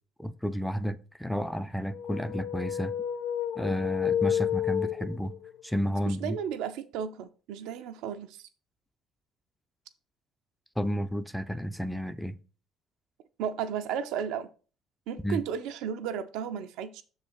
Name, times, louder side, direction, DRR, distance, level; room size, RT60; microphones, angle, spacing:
voice 1, 0.2-2.9 3.6-5.3 5.6-6.4 10.8-12.4 15.2-15.4, equal, ahead, 0.5 m, -31 dB
sound 1, 1.9-5.5, left 9 dB, 60° left, 0.4 m, -30 dB
voice 2, 6.1-8.5 13.4-14.5 15.1-17.0, right 8 dB, 60° right, 0.5 m, -34 dB
6.7 x 4.0 x 5.0 m
figure-of-eight pair, 50°, 0 cm